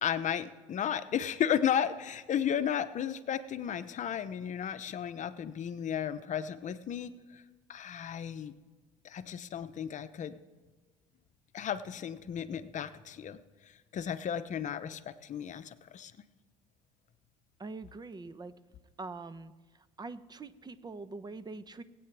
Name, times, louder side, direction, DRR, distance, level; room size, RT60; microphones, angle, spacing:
voice 1, 0.0-7.4 7.7-8.5 9.0-10.4 11.5-16.1, left 9 dB, 45° left, 11 dB, 0.8 m, -34 dB
voice 2, 17.6-18.5 19.0-19.5 20.0-21.8, right 3 dB, 25° right, 13 dB, 0.9 m, -43 dB
22.0 x 8.7 x 3.4 m, 1.2 s
supercardioid pair, 80°, 17 cm